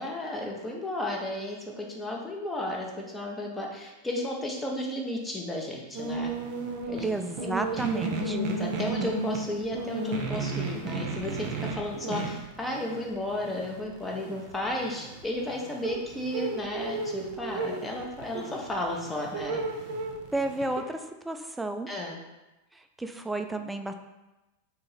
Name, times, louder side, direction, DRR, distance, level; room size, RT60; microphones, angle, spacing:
voice 1, 0.0-6.3 6.9-7.0 7.4-7.8 8.2-19.6 21.9-22.2, left 1 dB, 10° left, -1 dB, 0.7 m, -33 dB
sound 1, 5.9-20.8, right 3 dB, 45° right, 0.7 m, -34 dB
voice 2, 7.0-8.4 20.3-21.9 22.7-23.9, right 2 dB, 5° right, 6 dB, 0.3 m, -32 dB
3.7 x 2.8 x 4.1 m, 1.0 s
figure-of-eight pair, 90°, 0 cm